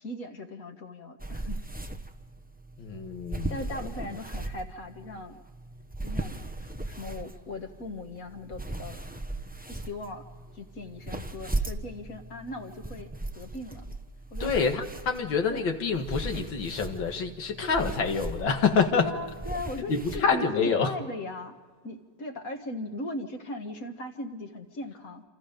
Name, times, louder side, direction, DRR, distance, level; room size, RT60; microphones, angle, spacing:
voice 1, 0.0-1.6 3.5-5.4 6.0-9.0 9.7-10.3 10.5-13.9 14.3-14.5 15.5-15.6 17.6-17.9 19.0-21.6 21.8-25.2, left 2 dB, 50° left, 5 dB, 2.0 m, -39 dB
sound 1, 1.2-20.2, right 2 dB, 10° right, 0.5 m, -38 dB
voice 2, 2.8-3.6 14.4-19.1 19.9-20.9, left 5 dB, 85° left, 5 dB, 2.5 m, -27 dB
28.0 x 27.0 x 5.2 m, 1.5 s
omnidirectional pair, 2.0 m